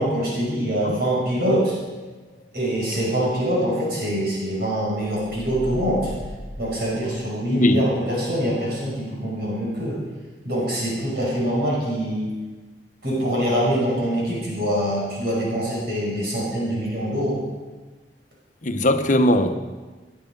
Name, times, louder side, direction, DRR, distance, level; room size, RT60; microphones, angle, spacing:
voice 1, 0.0-1.8 2.5-6.1 6.6-10.0 10.5-12.3 13.0-17.4, equal, 60° right, 5.7 m, -24 dB
sound 1, 5.0-7.6, left 1 dB, 80° right, 1.4 m, -37 dB
voice 2, 7.5-7.8 18.6-19.5, left 1 dB, 45° left, 1.0 m, -19 dB
19.0 x 10.5 x 5.3 m
head